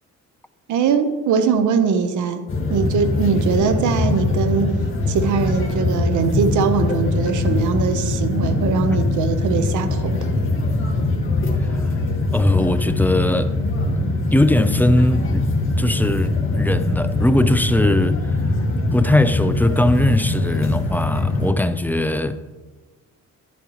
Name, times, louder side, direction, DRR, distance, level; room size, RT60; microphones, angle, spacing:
voice 1, 0.7-2.4 2.7-4.8 5.1-10.3, right 6 dB, 75° right, 1.0 m, -21 dB
sound 1, 2.5-21.5, left 2 dB, 40° left, 1.8 m, -22 dB
voice 2, 11.6-12.0 12.3-13.6 14.3-15.5 15.8-18.5 18.9-22.4, left 1 dB, 5° left, 0.4 m, -20 dB
10.5 x 10.0 x 3.1 m
cardioid pair, 90°, 30 cm